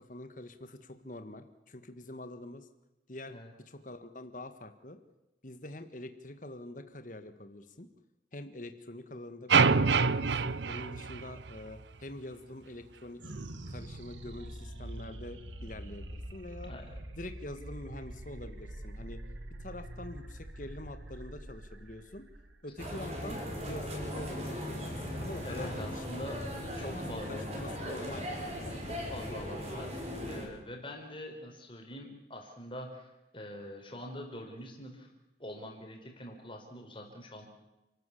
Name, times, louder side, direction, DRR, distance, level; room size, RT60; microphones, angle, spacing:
voice 1, 0.0-2.7 3.1-3.4 3.6-5.0 5.4-7.9 8.3-13.3 13.7-16.7 17.2-19.2 19.6-22.3 22.6-26.0 26.6-28.3 28.7-29.5 31.1-31.2, left 1 dB, 45° left, 8 dB, 1.7 m, -45 dB
sound 1, 9.5-11.8, right 5 dB, 70° right, 0.7 m, -26 dB
sound 2, 13.2-23.9, right 1 dB, 90° right, 1.9 m, -45 dB
voice 2, 16.6-17.0 25.4-26.4 26.8-27.3 28.8-35.1 35.4-37.5, left 1 dB, 30° left, 2 dB, 4.9 m, -44 dB
sound 3, 22.8-30.5, equal, 35° right, 5.9 m, -38 dB
29.5 x 13.5 x 8.5 m, 1.0 s
head